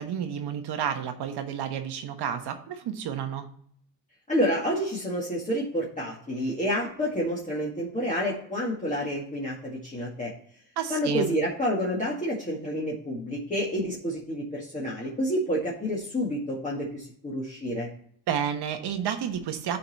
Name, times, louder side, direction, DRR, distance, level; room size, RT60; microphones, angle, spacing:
voice 1, 0.0-3.5 10.8-11.4 18.3-19.8, right 8 dB, 65° right, 7 dB, 1.3 m, -31 dB
voice 2, 4.3-10.3 10.9-17.9, equal, 15° left, -6 dB, 1.9 m, -29 dB
11.5 x 4.2 x 4.0 m, 0.62 s
cardioid pair, 100°, 43 cm